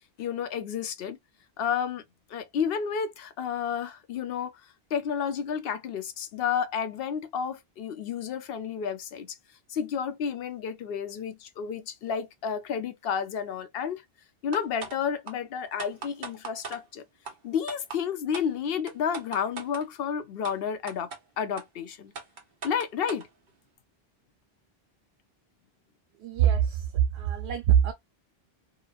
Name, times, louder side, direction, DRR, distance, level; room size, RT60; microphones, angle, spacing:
voice 1, 0.2-1.2 1.6-2.0 2.3-9.4 9.7-14.0 14.4-17.0 17.4-21.1 21.4-22.1 22.6-23.3, left 7 dB, 70° left, 0.8 m, -31 dB
sound 1, 14.5-15.0 15.3-15.4 15.8-16.8 17.2-17.3 17.7-18.0 18.3-18.5 18.9-19.8 20.4-20.5 20.9-21.2 21.6-21.7 22.1-23.3, right 4 dB, 55° right, 0.9 m, -38 dB
voice 2, 26.2-27.9, right 9 dB, 85° right, 0.8 m, -24 dB
2.9 x 2.1 x 2.3 m
omnidirectional pair, 1.0 m